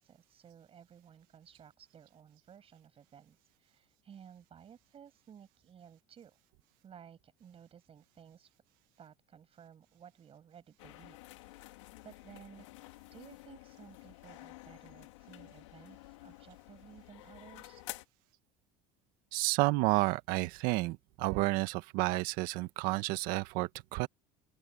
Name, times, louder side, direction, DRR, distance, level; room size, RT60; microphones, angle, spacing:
voice 1, 0.0-6.4 6.8-8.5 9.0-11.2 11.4-17.8, right 8 dB, 40° right, 7.4 m, -56 dB
sound 1, 10.8-18.0, left 21 dB, 85° left, 2.6 m, -51 dB
voice 2, 19.3-24.1, right 21 dB, 70° right, 1.6 m, -31 dB
open air
supercardioid pair, 95°, 15 cm